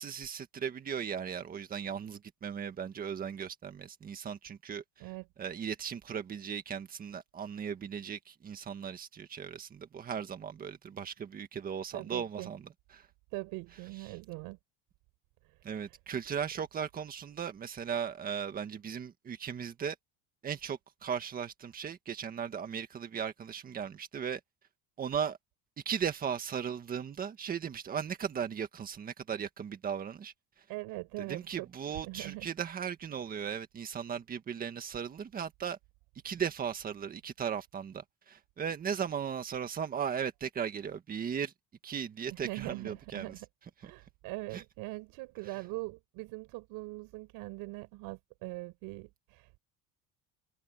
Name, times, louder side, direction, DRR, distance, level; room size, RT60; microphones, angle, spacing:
voice 1, 0.0-5.1 5.4-13.1 14.1-14.2 15.6-20.0 20.4-24.4 25.0-25.4 25.9-30.6 31.2-35.8 36.2-41.5 41.8-43.3 43.8-43.9 44.5-44.6, right 7 dB, 25° right, 1.7 m, -37 dB
voice 2, 11.9-12.5 13.3-14.6 15.4-16.0 30.7-32.5 42.3-43.5 43.8-49.6, right 23 dB, 70° right, 7.2 m, -42 dB
cardioid pair, 175°, 36 cm